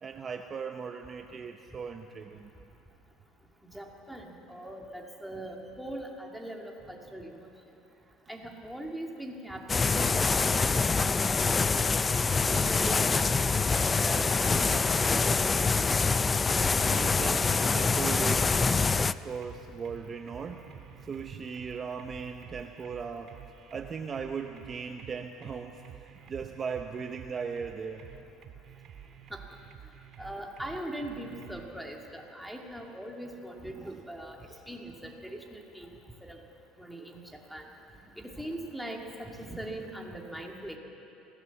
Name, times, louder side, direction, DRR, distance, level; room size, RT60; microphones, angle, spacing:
voice 1, 0.0-2.5 8.0-8.1 16.8-18.7 18.9-20.7 21.0-23.4 23.7-28.2 33.7-34.0 34.5-34.6, right 6 dB, 30° right, 5 dB, 0.8 m, -38 dB
voice 2, 3.7-7.5 8.3-10.3 10.6-11.8 12.3-15.4 29.3-29.4 30.2-34.4 34.7-35.9 36.2-36.4 36.8-37.2 37.5-37.6 38.2-40.8, right 1 dB, ahead, 0 dB, 2.4 m, -41 dB
sound 1, 9.7-19.1, left 4 dB, 20° left, 0.4 m, -25 dB
sound 2, 14.7-31.7, right 9 dB, 45° right, 1.8 m, -50 dB
24.0 x 17.0 x 7.1 m, 2.9 s
cardioid pair, 135°, 0 cm